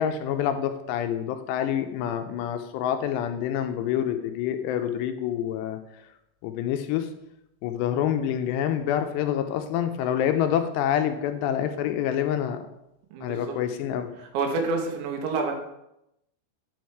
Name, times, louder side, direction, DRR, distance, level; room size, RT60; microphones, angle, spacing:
voice 1, 0.0-5.8 6.4-7.1 7.6-12.6 13.2-14.1, left 10 dB, 85° left, 8 dB, 2.6 m, -27 dB
voice 2, 13.1-13.6 14.2-15.6, right 3 dB, 90° right, 2 dB, 3.2 m, -28 dB
9.1 x 4.5 x 4.6 m, 0.84 s
omnidirectional pair, 5.0 m